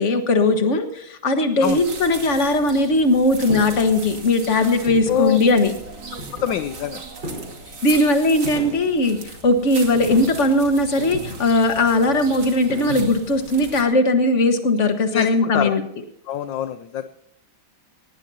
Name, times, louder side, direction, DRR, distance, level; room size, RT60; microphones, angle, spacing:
voice 1, 0.0-5.7 7.8-15.8, left 2 dB, 40° left, 7 dB, 1.7 m, -19 dB
sound 1, 1.6-13.8, right 3 dB, 55° right, 3.1 m, -38 dB
sound 2, 3.5-3.9 4.9-5.4 6.2-6.7 7.2-7.7 8.4-9.0 9.9-10.5 11.0-11.6 12.7-13.3, equal, 25° right, 4.9 m, -34 dB
voice 2, 6.4-7.0 15.1-15.7 16.3-17.1, left 10 dB, 70° left, 11 dB, 1.3 m, -24 dB
18.5 x 18.0 x 2.8 m, 0.75 s
omnidirectional pair, 2.3 m